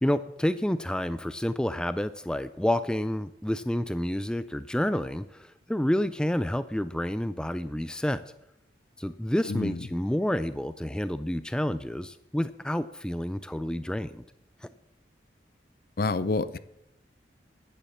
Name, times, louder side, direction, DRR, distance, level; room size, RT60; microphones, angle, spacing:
voice 1, 0.0-8.2 9.0-14.2 14.6-14.7, left 1 dB, 5° left, 0.3 m, -29 dB
voice 2, 9.5-9.8 16.0-16.6, left 3 dB, 55° left, 0.6 m, -27 dB
10.0 x 9.9 x 7.2 m
head